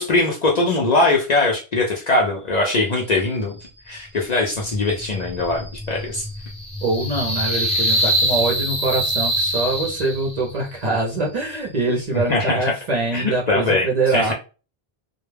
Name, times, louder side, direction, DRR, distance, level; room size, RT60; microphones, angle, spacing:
voice 1, 0.0-3.6 3.9-6.2 12.3-12.7 13.1-14.3, left 2 dB, 55° left, -1 dB, 0.5 m, -21 dB
sound 1, 4.5-10.5, equal, 10° left, 0.6 m, -24 dB
voice 2, 6.8-14.3, right 2 dB, 50° right, -2 dB, 0.6 m, -23 dB
2.1 x 2.1 x 3.2 m, 0.33 s
omnidirectional pair, 1.1 m